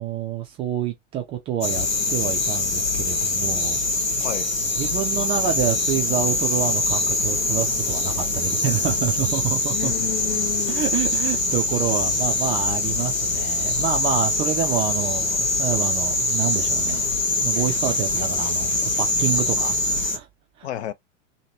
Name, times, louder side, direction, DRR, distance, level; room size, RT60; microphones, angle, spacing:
voice 1, 0.0-3.8 4.8-9.9 10.7-17.2 17.4-20.3 20.6-20.7, right 10 dB, 15° right, 0.3 m, -27 dB
sound 1, 1.6-20.2, left 2 dB, 90° left, 0.8 m, -23 dB
voice 2, 9.7-10.9 20.6-20.9, left 10 dB, 60° left, 0.6 m, -31 dB
2.8 x 2.8 x 2.8 m
figure-of-eight pair, 90°, 39 cm